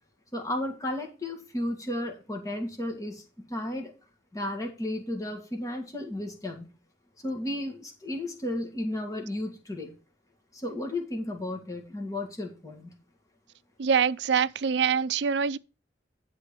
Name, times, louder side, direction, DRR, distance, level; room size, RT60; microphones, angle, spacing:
voice 1, 0.3-3.9 4.3-6.7 7.2-9.9 10.5-12.9, left 1 dB, 20° left, 1.8 m, -33 dB
voice 2, 13.8-15.6, right 6 dB, 80° right, 0.4 m, -25 dB
11.0 x 3.9 x 6.7 m
head